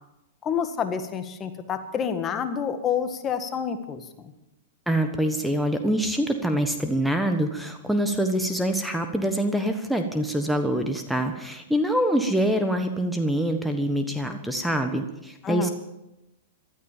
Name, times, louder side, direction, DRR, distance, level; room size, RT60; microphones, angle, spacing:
voice 1, 0.4-4.3 15.4-15.7, left 7 dB, 25° left, 9 dB, 1.6 m, -28 dB
voice 2, 4.9-15.7, right 1 dB, ahead, 5 dB, 1.3 m, -25 dB
14.5 x 13.0 x 7.4 m, 0.93 s
hypercardioid pair, 125°, 0 cm